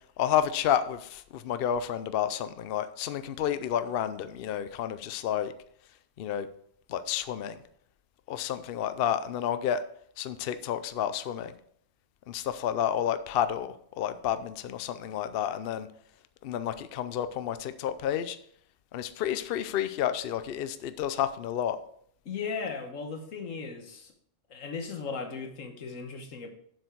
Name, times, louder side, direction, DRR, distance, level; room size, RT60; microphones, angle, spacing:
voice 1, 0.2-5.5 6.2-6.5 6.9-7.6 8.3-9.8 10.2-11.5 12.3-15.9 16.4-18.4 18.9-21.8, left 10 dB, 60° left, 12 dB, 0.7 m, -30 dB
voice 2, 22.2-24.1 24.5-26.5, left 5 dB, 90° left, 5 dB, 1.6 m, -37 dB
7.7 x 7.0 x 4.6 m, 0.66 s
omnidirectional pair, 1.3 m